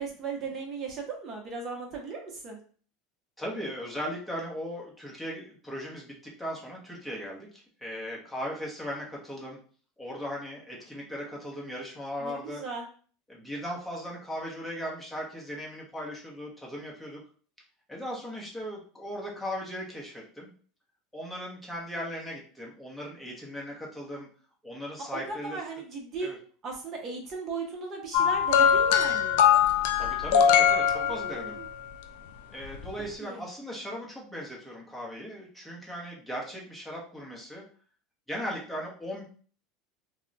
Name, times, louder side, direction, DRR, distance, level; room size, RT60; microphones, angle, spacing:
voice 1, 0.0-2.6 12.2-12.9 25.0-26.3 26.6-29.4 31.0-31.7 33.2-33.5, right 4 dB, 35° right, 0 dB, 0.7 m, -37 dB
voice 2, 3.4-9.6 10.0-12.6 13.3-17.2 17.9-20.5 21.1-24.3 24.6-25.6 26.2-26.4 29.9-31.6 32.5-37.6 38.3-39.2, equal, 5° left, -3 dB, 0.8 m, -38 dB
sound 1, 28.1-31.7 32.7-32.9, left 8 dB, 75° left, 0.3 m, -22 dB
2.3 x 2.1 x 3.8 m, 0.44 s
supercardioid pair, 135°, 0 cm